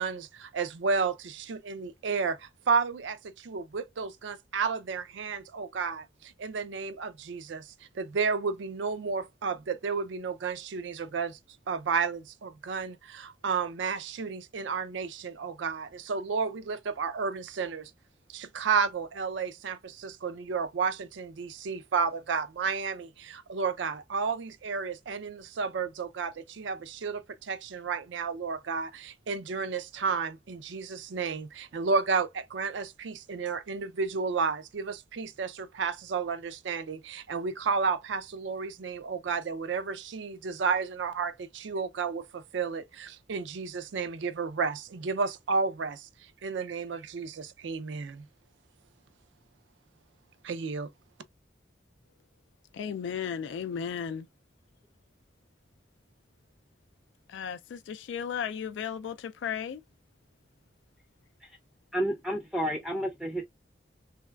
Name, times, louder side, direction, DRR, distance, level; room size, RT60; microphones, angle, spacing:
voice 1, 0.0-11.4 11.7-17.9 18.3-46.1 46.4-48.3 50.4-50.9, right 5 dB, 85° right, 0.4 m, -32 dB
voice 2, 52.7-54.3 57.3-59.8, left 7 dB, 85° left, 0.3 m, -35 dB
voice 3, 61.9-63.4, equal, ahead, 0.4 m, -31 dB
3.3 x 3.1 x 2.2 m
head